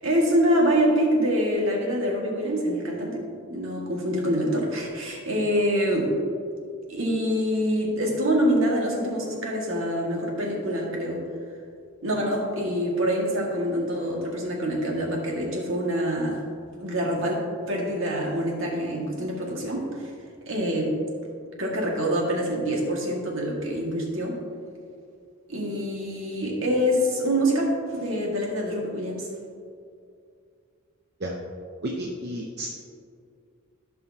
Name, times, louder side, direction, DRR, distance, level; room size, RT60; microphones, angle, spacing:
voice 1, 0.0-3.2 3.5-6.1 6.9-11.2 12.0-16.4 16.8-20.1 20.5-21.0 21.6-24.4 25.5-29.3, equal, 60° right, -2 dB, 1.8 m, -25 dB
voice 2, 31.8-32.7, right 1 dB, 45° right, -1 dB, 0.7 m, -31 dB
15.5 x 5.6 x 2.8 m, 2.4 s
head